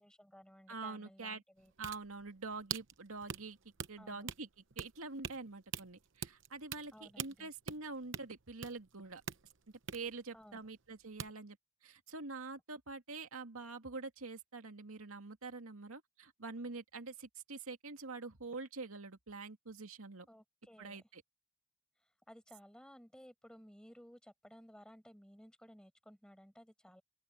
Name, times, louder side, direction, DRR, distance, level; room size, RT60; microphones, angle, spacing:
voice 1, 0.0-1.7 4.0-4.3 6.9-7.5 10.3-10.6 20.3-21.0 22.3-27.0, equal, 5° left, 6.4 m, -58 dB
voice 2, 0.7-1.4 1.8-3.6 3.9-4.5 4.8-9.2 9.9-11.6 11.8-20.3 20.8-21.2, right 3 dB, 90° right, 2.3 m, -46 dB
sound 1, 1.6-10.9 11.2-11.3, right 7 dB, 60° right, 0.9 m, -45 dB
open air
head